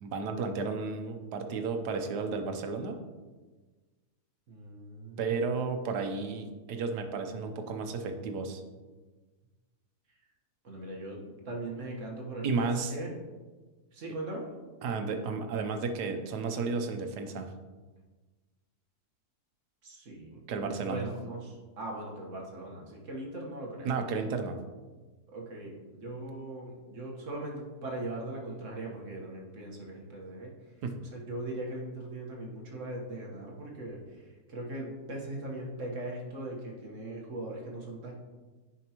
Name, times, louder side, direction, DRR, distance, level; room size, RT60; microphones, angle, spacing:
voice 1, 0.0-3.0 5.2-8.6 12.4-12.9 14.8-17.5 20.5-21.0 23.8-24.6 30.8-31.0, right 4 dB, 90° right, 6 dB, 1.3 m, -33 dB
voice 2, 4.5-5.4 10.6-13.2 13.9-14.5 19.8-23.9 25.3-30.5 31.1-38.1, right 1 dB, 50° right, -1 dB, 1.6 m, -40 dB
9.7 x 5.1 x 3.0 m, 1.3 s
omnidirectional pair, 1.7 m